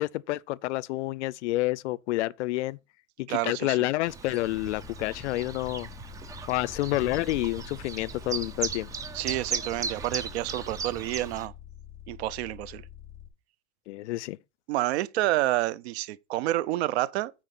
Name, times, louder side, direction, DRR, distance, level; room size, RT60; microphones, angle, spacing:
voice 1, 0.0-2.8 3.2-5.9 6.5-8.9 13.9-14.4, left 18 dB, 65° left, 0.5 m, -29 dB
voice 2, 3.3-3.8 9.1-11.5 12.1-12.8 14.7-17.3, right 16 dB, 60° right, 0.8 m, -29 dB
Chirp tweet, 4.1-11.5, right 5 dB, 10° right, 0.4 m, -37 dB
sound 1, 4.4-13.3, left 11 dB, 25° left, 3.4 m, -47 dB
9.2 x 4.5 x 6.0 m
supercardioid pair, 150°, 37 cm